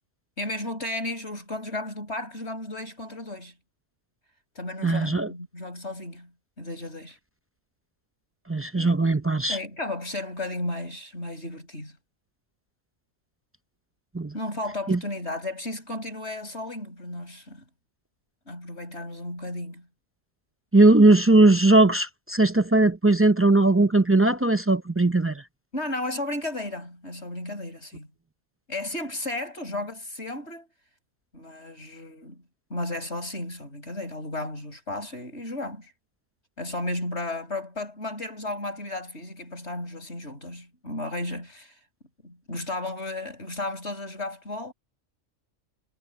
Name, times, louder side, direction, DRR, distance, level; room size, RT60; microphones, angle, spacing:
voice 1, 0.4-3.5 4.6-7.2 8.7-9.0 9.5-12.0 14.3-17.6 18.5-19.9 25.7-28.1 28.7-30.7 31.3-32.4 32.7-35.9 36.6-41.8 42.2-44.7, left 2 dB, 60° left, 7.2 m, -34 dB
voice 2, 4.8-5.3 8.5-9.6 14.1-14.3 14.9-15.0 20.7-25.4, right 2 dB, 20° right, 0.3 m, -19 dB
omnidirectional pair, 1.3 m